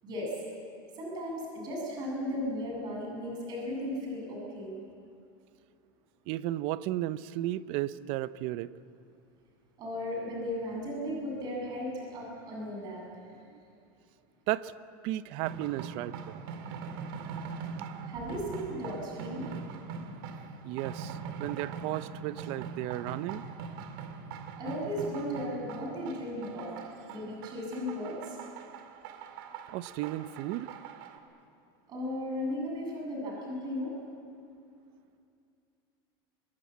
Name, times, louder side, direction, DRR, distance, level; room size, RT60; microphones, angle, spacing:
voice 1, 0.0-0.3 1.0-4.8 9.8-13.5 18.1-19.5 24.6-26.7 27.1-28.4 31.9-33.9, left 1 dB, 35° right, -1 dB, 7.8 m, -36 dB
voice 2, 6.3-8.7 14.5-14.7 15.0-16.4 20.6-23.4 29.7-30.7, right 15 dB, 50° right, 16 dB, 0.7 m, -34 dB
sound 1, 15.4-31.2, right 6 dB, 70° right, 2.4 m, -42 dB
24.0 x 22.0 x 8.5 m, 2.5 s
supercardioid pair, 155°, 12 cm